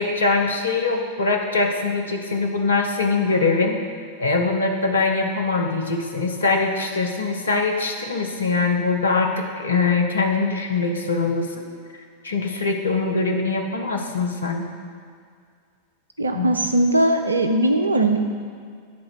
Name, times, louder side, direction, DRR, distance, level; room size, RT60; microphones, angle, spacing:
voice 1, 0.0-3.8 4.2-11.7 12.2-14.7 16.3-16.5, left 3 dB, 75° left, 2 dB, 0.7 m, -22 dB
voice 2, 16.2-18.2, right 1 dB, 80° right, 5 dB, 0.4 m, -19 dB
9.5 x 3.7 x 4.7 m, 2.2 s
figure-of-eight pair, 90°, 0 cm